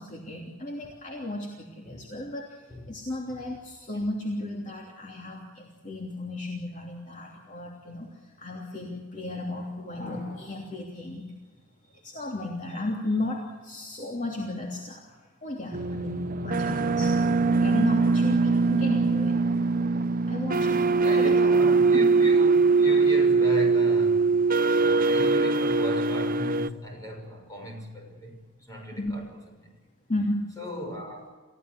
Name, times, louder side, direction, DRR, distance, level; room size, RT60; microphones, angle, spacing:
voice 1, 0.0-2.6 2.9-11.3 11.8-17.2 17.5-19.4 20.3-20.8 21.1-21.4 21.9-22.1 28.9-29.2 30.1-30.5, left 1 dB, 35° left, 3.1 m, -34 dB
sound 1, 15.7-26.7, right 4 dB, 40° right, 0.8 m, -22 dB
voice 2, 21.0-29.4 30.6-31.3, equal, 15° left, 6.4 m, -37 dB
29.0 x 16.0 x 8.2 m
head